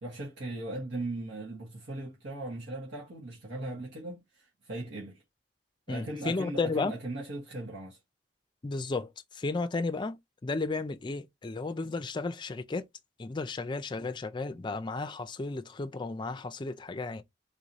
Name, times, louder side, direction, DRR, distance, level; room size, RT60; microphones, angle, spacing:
voice 1, 0.0-5.2 5.9-8.0, right 2 dB, 85° right, 1.2 m, -38 dB
voice 2, 5.9-6.9 8.6-12.9 13.2-17.2, left 3 dB, 25° left, 0.4 m, -33 dB
3.9 x 2.6 x 2.9 m
head